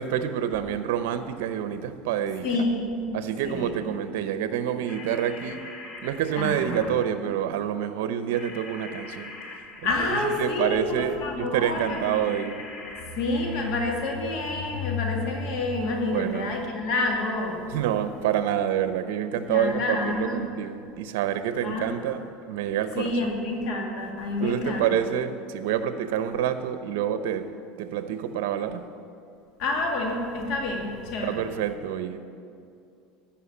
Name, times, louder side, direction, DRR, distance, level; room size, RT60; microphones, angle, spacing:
voice 1, 0.0-2.6 3.1-5.6 6.0-9.3 9.8-12.6 16.1-16.5 17.7-23.3 24.4-27.5 27.8-28.8 31.2-32.2, right 9 dB, 75° right, 11 dB, 0.7 m, -27 dB
voice 2, 2.4-3.2 3.4-3.7 6.4-6.9 9.8-12.2 13.2-17.6 19.5-20.5 21.6-22.0 23.0-24.9 29.6-31.4, left 2 dB, 55° left, 1 dB, 2.0 m, -28 dB
sound 1, 3.6-3.8 4.8-7.2 8.3-10.7 11.8-14.1, left 3 dB, 35° left, 1.6 m, -43 dB
12.5 x 5.8 x 8.4 m, 2.5 s
supercardioid pair, 130°, 0 cm